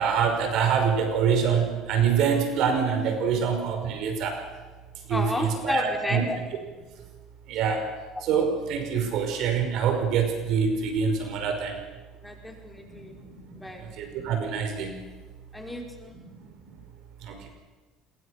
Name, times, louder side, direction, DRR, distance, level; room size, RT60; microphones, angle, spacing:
voice 1, 0.0-4.4 5.1-6.2 7.5-7.9 8.2-11.8 12.8-15.0 16.1-16.5 17.2-17.5, right 6 dB, 65° right, 5 dB, 5.3 m, -26 dB
voice 2, 5.1-6.4 8.1-8.2 12.2-13.2 13.6-13.9 15.5-16.1, left 1 dB, 5° left, 2 dB, 4.7 m, -32 dB
27.0 x 22.0 x 6.6 m, 1.3 s
supercardioid pair, 100°, 0 cm